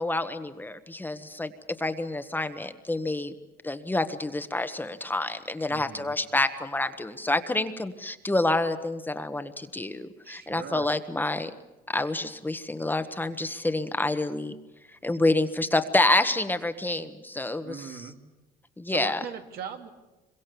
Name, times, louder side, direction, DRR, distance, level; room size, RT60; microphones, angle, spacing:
voice 1, 0.0-1.5 1.8-3.3 3.6-11.5 11.9-14.5 15.0-18.1 18.8-19.2, left 2 dB, 10° left, 9 dB, 1.3 m, -28 dB
voice 2, 5.7-6.2 10.2-10.9 17.6-18.2 18.9-19.9, right 7 dB, 70° right, 4 dB, 2.6 m, -39 dB
25.5 x 23.0 x 7.0 m, 1.1 s
cardioid pair, 110°, 17 cm